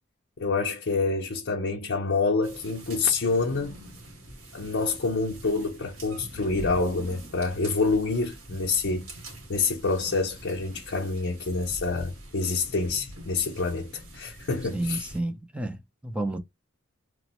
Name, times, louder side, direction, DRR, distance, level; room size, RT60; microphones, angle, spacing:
voice 1, 0.4-3.8 4.5-9.1 9.5-15.1, left 3 dB, 55° left, 0.6 m, -27 dB
sound 1, 2.4-15.2, right 1 dB, 80° right, 1.2 m, -44 dB
voice 2, 14.7-16.4, right 1 dB, 5° right, 0.5 m, -31 dB
3.1 x 2.0 x 2.9 m
head